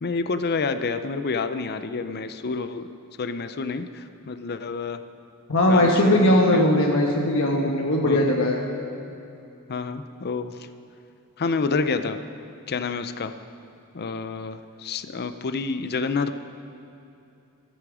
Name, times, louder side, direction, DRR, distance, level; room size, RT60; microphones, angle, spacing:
voice 1, 0.0-2.9 3.2-5.0 5.7-6.8 8.0-8.2 9.7-10.7 11.4-12.2 12.7-13.3 13.9-16.3, left 4 dB, 45° left, 10 dB, 0.6 m, -28 dB
voice 2, 5.5-8.6, left 1 dB, 65° left, 0 dB, 1.2 m, -19 dB
14.0 x 12.0 x 5.0 m, 2.8 s
head